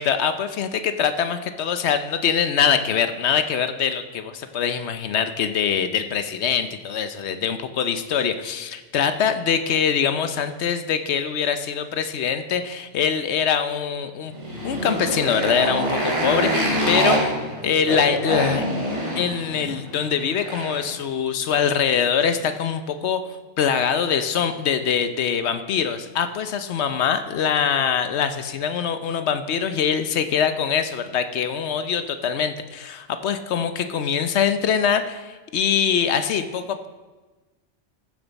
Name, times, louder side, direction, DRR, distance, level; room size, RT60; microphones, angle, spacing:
voice 1, 0.0-14.3 14.6-18.6 19.2-23.2 23.6-36.9, left 7 dB, 75° left, 9 dB, 1.0 m, -23 dB
Motorcycle, 14.3-20.9, right 1 dB, 85° right, 3.0 m, -25 dB
14.5 x 6.9 x 4.1 m, 1.2 s
omnidirectional pair, 1.2 m